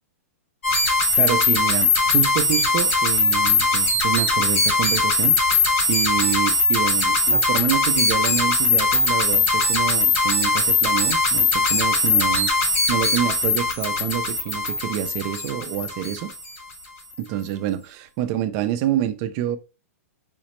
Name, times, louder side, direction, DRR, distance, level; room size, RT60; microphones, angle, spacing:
sound 1, 0.6-16.5, left 3 dB, 65° left, 1.6 m, -20 dB
voice 1, 1.1-5.6 5.9-12.5 12.9-16.3 17.2-19.6, right 11 dB, 30° right, 0.3 m, -27 dB
4.9 x 2.0 x 3.0 m
hypercardioid pair, 165°, 8 cm